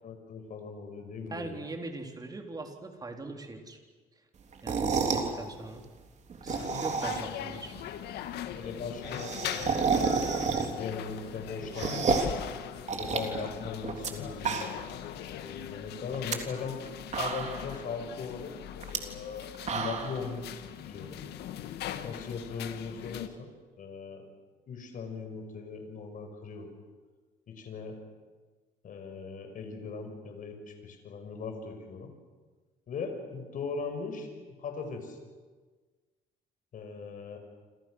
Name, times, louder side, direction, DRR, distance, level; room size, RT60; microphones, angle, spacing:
voice 1, 0.0-1.6 8.5-10.1 10.7-12.3 13.0-14.7 15.3-16.8 17.1-18.6 18.9-21.2 22.0-23.5 23.8-24.2 24.7-26.7 27.5-28.0 28.8-32.1 32.9-34.3 34.6-35.2 36.7-37.4, left 5 dB, 50° left, 5 dB, 5.8 m, -39 dB
voice 2, 1.3-3.8 4.6-5.8 6.4-7.7, right 3 dB, 20° right, 3 dB, 4.0 m, -41 dB
sound 1, 4.5-5.3 6.3-7.4 7.7-7.8 8.1-8.2 8.4-8.5 8.7-10.9 11.3-12.4 12.9-14.1 14.4-15.0 15.3-15.4 16.1-16.4 16.8-16.9 17.1-17.7 18.8-19.0 19.4-20.2, right 5 dB, 45° right, 3.4 m, -30 dB
sound 2, 6.5-23.3, left 10 dB, 75° left, 1.8 m, -40 dB
28.5 x 26.5 x 6.5 m, 1.4 s
cardioid pair, 110°, 17 cm